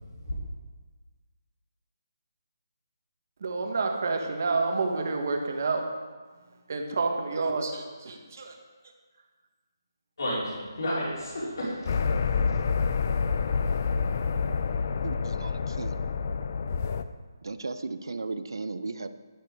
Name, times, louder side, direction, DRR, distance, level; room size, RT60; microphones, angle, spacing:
voice 1, 3.4-5.8 6.7-8.5, right 3 dB, 40° right, 3 dB, 1.6 m, -29 dB
voice 2, 10.2-12.6, equal, 60° left, -7 dB, 4.3 m, -32 dB
sound 1, 11.9-17.0, left 5 dB, 35° left, 0.5 m, -28 dB
voice 3, 15.0-16.0 17.4-19.1, right 3 dB, 75° right, 11 dB, 0.8 m, -35 dB
11.0 x 9.3 x 4.8 m, 1.4 s
hypercardioid pair, 175°, 2 cm